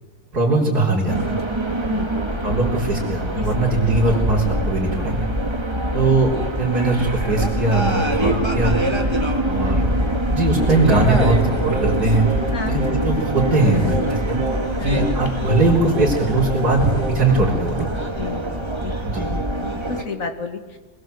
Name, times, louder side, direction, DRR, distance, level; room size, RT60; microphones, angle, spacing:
voice 1, 0.3-1.3 2.4-5.2 5.9-8.7 9.4-12.2 12.7-14.4 14.8-17.9 19.0-19.3, right 2 dB, 55° right, -6 dB, 4.5 m, -20 dB
sound 1, 1.1-20.0, right 1 dB, 15° right, 1.9 m, -24 dB
voice 2, 5.8-6.2 9.1-9.3 12.5-12.8 14.8-15.1 18.2-19.2 19.9-20.8, left 4 dB, 45° left, 7 dB, 2.3 m, -32 dB
Singing, 10.6-17.4, right 4 dB, 30° right, 4.8 m, -32 dB
24.0 x 20.5 x 7.9 m, 1.2 s
omnidirectional pair, 2.0 m